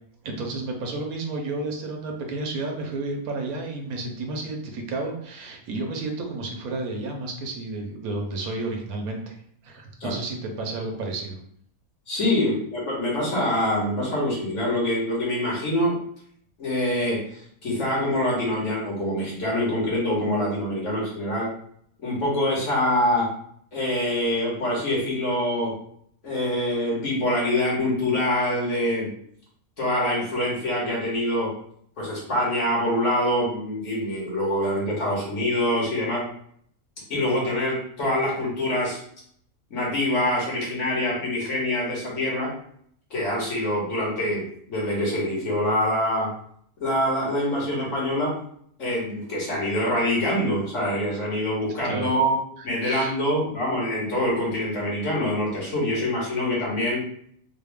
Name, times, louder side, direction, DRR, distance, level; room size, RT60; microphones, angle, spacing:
voice 1, 0.2-9.4 9.6-11.4 51.8-52.1 52.6-53.1, right 2 dB, 90° right, 2 dB, 1.2 m, -31 dB
voice 2, 12.1-16.0 16.6-17.3 17.6-21.5 22.0-23.3 23.7-25.7 26.2-29.1 29.8-31.5 32.0-36.2 37.1-39.0 39.7-42.5 43.1-46.3 46.8-48.3 48.8-52.3 52.6-57.0, left 1 dB, 60° left, -5 dB, 1.7 m, -25 dB
4.0 x 2.0 x 3.5 m, 0.65 s
omnidirectional pair, 1.5 m